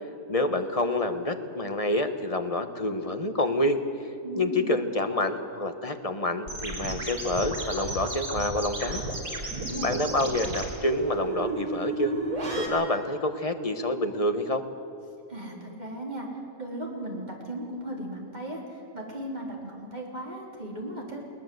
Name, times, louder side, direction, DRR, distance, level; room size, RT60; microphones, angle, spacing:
voice 1, 0.3-3.8 4.3-9.0 9.8-12.1 12.6-14.6, left 1 dB, 25° left, 8 dB, 1.1 m, -27 dB
voice 2, 4.2-4.9 9.5-9.9 15.3-21.2, right 1 dB, 30° right, -2 dB, 4.0 m, -37 dB
sound 1, 6.5-12.7, right 2 dB, 80° right, 4.3 m, -32 dB
21.0 x 19.0 x 7.9 m, 2.9 s
omnidirectional pair, 1.5 m